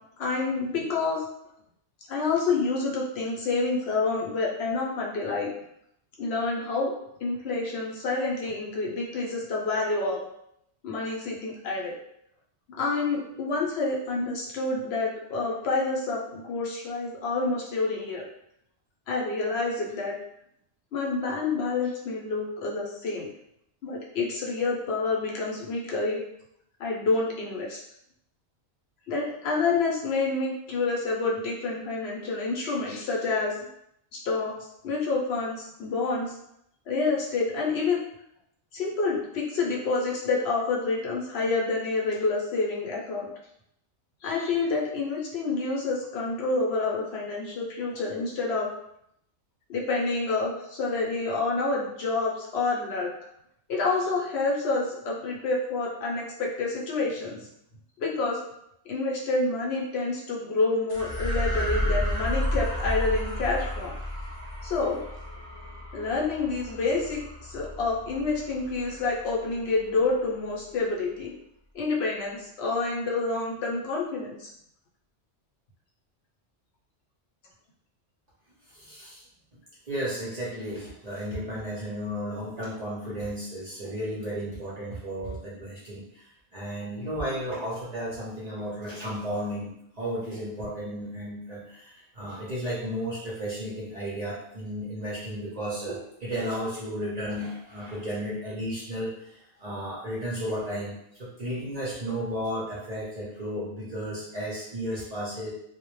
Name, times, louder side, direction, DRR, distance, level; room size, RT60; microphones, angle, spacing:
voice 1, 0.2-1.2 2.1-5.5 6.2-6.9 7.2-10.2 10.8-11.9 12.7-18.2 19.1-20.1 20.9-23.3 23.8-26.2 26.8-27.8 29.1-33.5 34.1-36.4 36.9-38.0 38.7-43.3 44.2-48.7 49.7-53.1 53.7-57.5 58.0-58.4 58.9-63.9 64.6-65.0 65.9-71.3 71.7-74.5, left 3 dB, 70° left, -3 dB, 0.8 m, -28 dB
sound 1, 60.9-69.5, equal, 30° left, 0.5 m, -32 dB
voice 2, 78.7-79.2 79.9-105.5, equal, 50° right, -7 dB, 0.5 m, -34 dB
2.1 x 2.0 x 2.9 m, 0.76 s
omnidirectional pair, 1.2 m